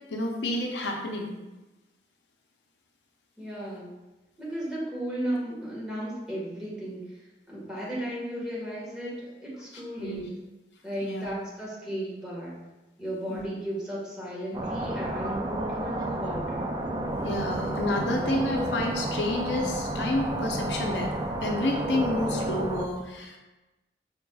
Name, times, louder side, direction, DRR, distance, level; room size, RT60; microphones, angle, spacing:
voice 1, 0.1-1.3 9.7-10.2 11.0-11.3 13.3-13.4 17.1-21.1 21.4-23.4, left 1 dB, 85° left, 1 dB, 0.7 m, -30 dB
voice 2, 3.4-3.9 4.4-7.0 7.5-10.3 10.8-12.6 13.0-16.7, right 1 dB, 5° right, -7 dB, 1.5 m, -34 dB
sound 1, 14.5-22.9, right 1 dB, 20° right, 0.3 m, -31 dB
5.4 x 4.3 x 2.3 m, 1.1 s
head